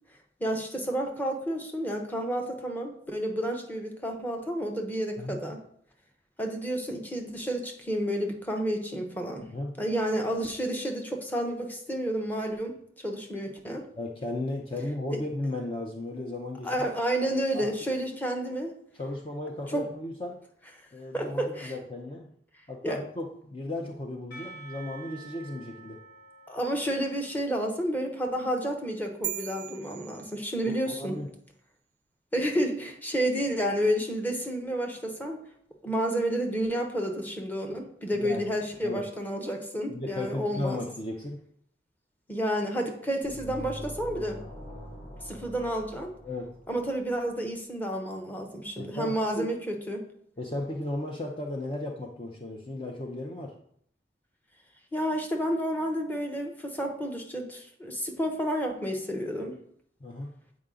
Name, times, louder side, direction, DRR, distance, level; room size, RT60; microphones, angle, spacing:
voice 1, 0.4-5.6 6.4-9.5 9.8-12.8 13.0-13.8 15.1-15.2 16.6-18.7 19.7-19.8 21.1-21.7 22.8-22.9 26.5-31.1 32.3-35.4 35.8-40.8 42.3-44.4 45.2-46.1 46.7-50.0 54.9-59.6, equal, 10° left, 2 dB, 0.9 m, -30 dB
voice 2, 9.4-9.7 13.9-16.7 17.5-17.7 18.9-20.4 20.9-22.3 22.7-26.0 30.6-31.3 38.1-38.6 38.8-39.0 39.9-41.4 46.2-46.5 48.8-49.5 50.4-53.5 60.0-60.3, left 1 dB, 30° left, 1 dB, 0.6 m, -35 dB
Percussion / Church bell, 24.3-29.1, right 3 dB, 70° left, 2.4 m, -50 dB
sound 1, 29.2-31.0, right 12 dB, 45° right, 0.3 m, -38 dB
sound 2, 43.2-47.0, equal, 45° left, 2.8 m, -43 dB
8.0 x 4.8 x 3.8 m, 0.66 s
head